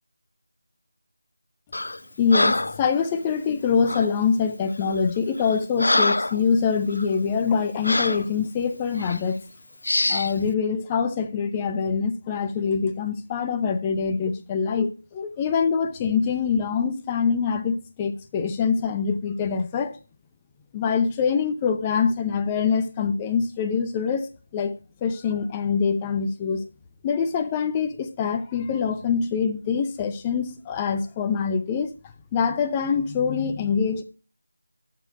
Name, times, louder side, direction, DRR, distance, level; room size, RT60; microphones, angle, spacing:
Breathing, 1.7-2.0 2.3-2.8 3.9-4.1 4.8-5.0 5.4-6.4 6.9-7.1 7.8-8.3 9.0-9.2 9.8-10.3, left 2 dB, 60° left, 0.5 m, -24 dB
voice 1, 2.2-9.4 10.1-20.0 20.7-26.7 27.0-31.9 32.3-34.0, left 6 dB, 15° left, 0.7 m, -24 dB
13.0 x 7.4 x 2.6 m
figure-of-eight pair, 165°, 0 cm